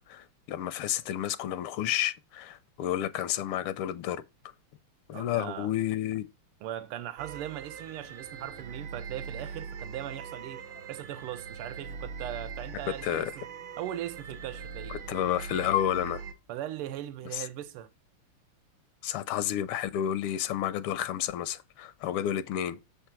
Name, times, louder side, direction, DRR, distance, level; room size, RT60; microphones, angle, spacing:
voice 1, 0.1-4.2 5.1-6.3 13.0-13.3 14.9-16.2 17.3-17.4 19.0-22.8, left 11 dB, 80° left, 1.5 m, -31 dB
voice 2, 5.1-5.7 6.6-10.6 10.9-13.5 13.8-15.0 16.5-17.9, right 12 dB, 90° right, 1.6 m, -39 dB
sound 1, 7.2-16.3, right 6 dB, 65° right, 1.8 m, -41 dB
6.9 x 4.5 x 5.8 m
omnidirectional pair, 2.4 m